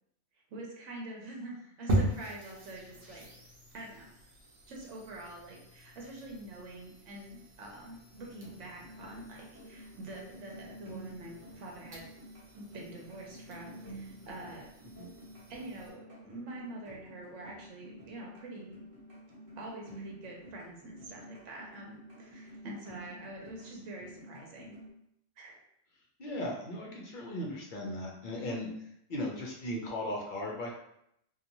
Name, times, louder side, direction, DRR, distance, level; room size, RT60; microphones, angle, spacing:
voice 1, 0.5-3.4 3.7-4.1 4.7-12.0 12.5-14.7 15.5-18.8 19.6-24.7 25.4-25.6, right 2 dB, 75° right, -1 dB, 1.0 m, -46 dB
sound 1, 1.9-15.9, right 1 dB, 55° right, 0.9 m, -40 dB
sound 2, 8.1-24.9, right 1 dB, 30° right, 1.0 m, -50 dB
voice 2, 26.2-28.7 29.1-30.7, left 1 dB, 55° left, -2 dB, 0.6 m, -37 dB
2.9 x 2.3 x 2.6 m, 0.75 s
omnidirectional pair, 1.3 m